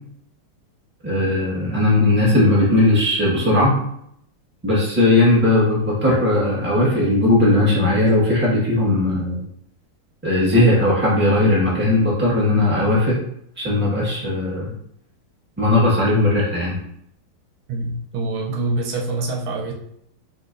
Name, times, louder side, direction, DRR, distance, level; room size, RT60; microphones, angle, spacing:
voice 1, 1.0-3.8 4.6-9.4 10.2-13.2 13.6-14.7 15.6-16.8, left 2 dB, 5° right, -6 dB, 1.2 m, -18 dB
voice 2, 17.7-19.7, right 2 dB, 85° right, 0 dB, 1.7 m, -25 dB
5.4 x 3.2 x 2.6 m, 0.72 s
omnidirectional pair, 2.3 m